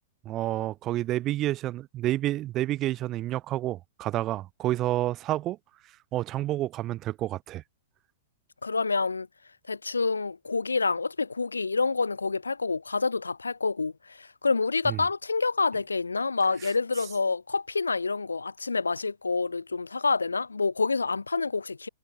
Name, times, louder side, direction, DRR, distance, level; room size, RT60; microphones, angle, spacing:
voice 1, 0.3-5.6 6.1-7.6 14.9-15.0, right 14 dB, 35° right, 0.7 m, -29 dB
voice 2, 8.6-9.3 9.7-21.9, left 4 dB, 85° left, 0.5 m, -27 dB
figure-of-eight pair, 105°, 0 cm